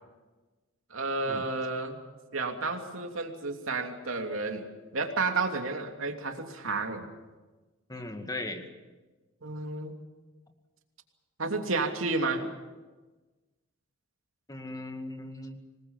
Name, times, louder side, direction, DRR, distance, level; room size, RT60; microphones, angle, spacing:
voice 1, 0.9-2.0 2.3-4.6 4.9-7.1 9.4-9.9 11.4-12.5, right 3 dB, 70° right, 3 dB, 3.0 m, -31 dB
voice 2, 7.9-8.6 14.5-15.6, left 2 dB, 20° left, 5 dB, 2.1 m, -38 dB
26.0 x 20.0 x 7.4 m, 1.2 s
head